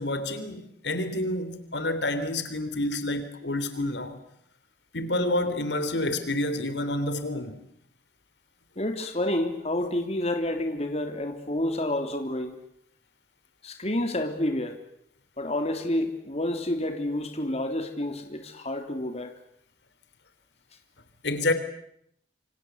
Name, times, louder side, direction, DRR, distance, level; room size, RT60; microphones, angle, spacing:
voice 1, 0.0-4.2 4.9-7.6 21.2-21.5, left 1 dB, 90° left, 3.4 m, -28 dB
voice 2, 8.8-12.6 13.6-14.8 15.4-19.3, left 1 dB, 40° left, 3.4 m, -29 dB
28.0 x 26.0 x 8.1 m
head